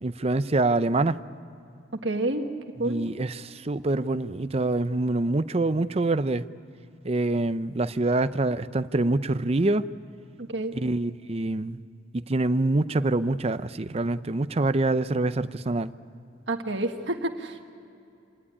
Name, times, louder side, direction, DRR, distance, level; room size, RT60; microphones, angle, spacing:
voice 1, 0.0-1.2 2.8-6.4 7.0-9.8 10.7-11.8 12.1-15.9, right 2 dB, 35° right, 13 dB, 0.6 m, -25 dB
voice 2, 2.0-2.5 2.8-3.0 10.4-10.7 16.5-17.7, right 2 dB, 70° right, 5 dB, 1.6 m, -29 dB
27.5 x 19.0 x 9.8 m, 2.6 s
head